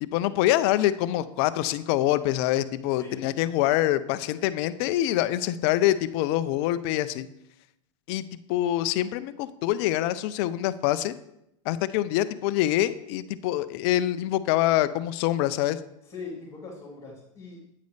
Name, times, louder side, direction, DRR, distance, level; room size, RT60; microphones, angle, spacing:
voice 1, 0.0-7.3 8.1-8.2 8.5-11.2 11.7-15.8, left 14 dB, 50° left, 14 dB, 0.6 m, -25 dB
voice 2, 2.9-3.2 16.0-17.6, left 4 dB, 20° left, -7 dB, 3.3 m, -41 dB
9.1 x 8.5 x 3.3 m, 0.82 s
hypercardioid pair, 100°, 17 cm